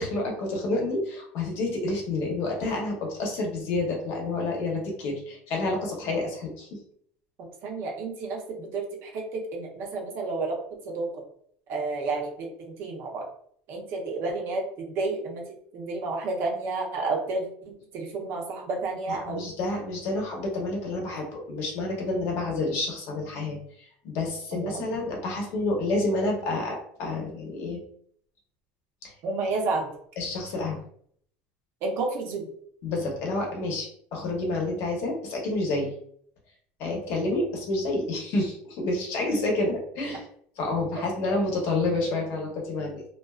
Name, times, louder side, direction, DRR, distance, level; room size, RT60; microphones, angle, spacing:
voice 1, 0.0-6.8 19.1-23.6 24.0-27.8 29.0-29.1 30.2-30.8 32.8-35.9 36.8-40.3 40.6-43.1, left 2 dB, 60° left, 0 dB, 0.8 m, -29 dB
voice 2, 7.6-10.6 10.9-11.2 11.7-12.5 12.8-13.2 13.7-15.4 15.7-19.4 24.5-24.8 29.2-29.9 31.8-32.5 40.9-41.0, right 3 dB, 55° right, 0 dB, 0.7 m, -31 dB
2.4 x 2.3 x 2.3 m, 0.64 s
cardioid pair, 135°, 5 cm